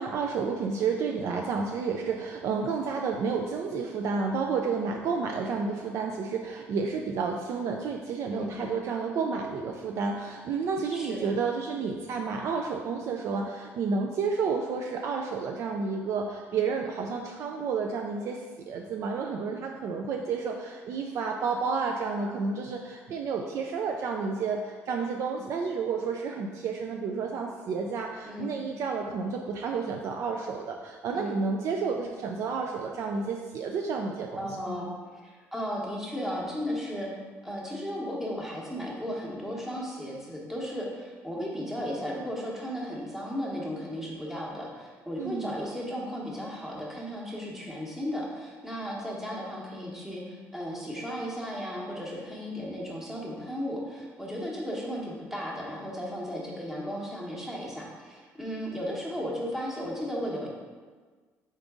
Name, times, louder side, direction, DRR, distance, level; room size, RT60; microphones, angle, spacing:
voice 1, 0.0-34.6 45.2-45.5, right 5 dB, 60° right, 2 dB, 0.3 m, -31 dB
voice 2, 34.4-37.1 37.4-60.5, equal, 5° right, -4 dB, 1.0 m, -35 dB
3.9 x 3.7 x 3.6 m, 1.5 s
cardioid pair, 115°, 6 cm